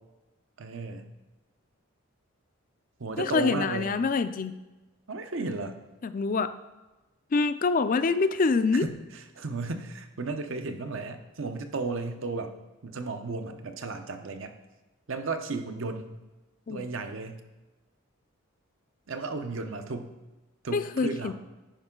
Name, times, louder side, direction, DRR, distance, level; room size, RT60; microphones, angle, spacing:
voice 1, 0.6-1.1 3.0-3.9 5.1-5.8 8.7-12.5 12.8-14.5 15.1-16.2 16.7-17.4 19.1-20.1 20.6-21.3, right 3 dB, 65° right, 7 dB, 0.7 m, -34 dB
voice 2, 3.2-4.6 6.0-6.5 7.3-8.9 16.7-16.8 20.7-21.3, left 4 dB, 40° left, 12 dB, 0.4 m, -25 dB
10.0 x 5.3 x 3.8 m, 1.1 s
head